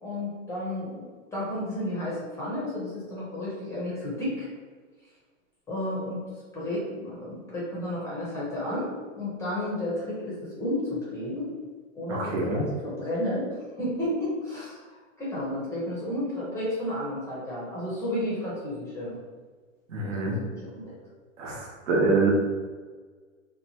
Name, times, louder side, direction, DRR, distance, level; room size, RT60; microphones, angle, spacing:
voice 1, 0.0-1.0 1.3-4.5 5.7-6.2 6.5-8.9 9.2-11.5 11.9-14.8 15.2-19.2 20.0-21.0, left 1 dB, 5° left, -7 dB, 0.5 m, -32 dB
voice 2, 12.1-12.6 19.9-20.3 21.4-22.3, right 3 dB, 70° right, -1 dB, 0.9 m, -25 dB
2.8 x 2.1 x 2.8 m, 1.5 s
hypercardioid pair, 130°, 39 cm